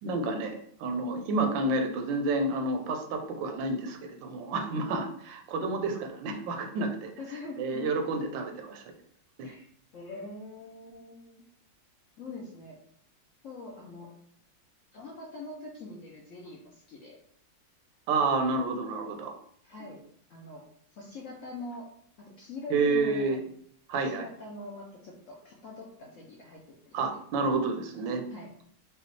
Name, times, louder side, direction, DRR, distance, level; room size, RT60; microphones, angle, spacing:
voice 1, 0.0-7.1 7.6-8.8 9.4-9.5 18.1-19.3 22.7-23.4 23.9-24.2 26.9-28.2, right 3 dB, 90° right, 5 dB, 1.4 m, -29 dB
voice 2, 7.2-7.9 9.4-9.6 9.9-11.4 12.2-12.8 13.4-14.1 14.9-17.2 19.6-20.0 20.3-20.6 20.9-21.9 22.2-23.5 23.9-27.0 28.3-28.6, left 2 dB, 65° left, -1 dB, 0.7 m, -43 dB
4.9 x 2.3 x 3.2 m, 0.65 s
omnidirectional pair, 1.9 m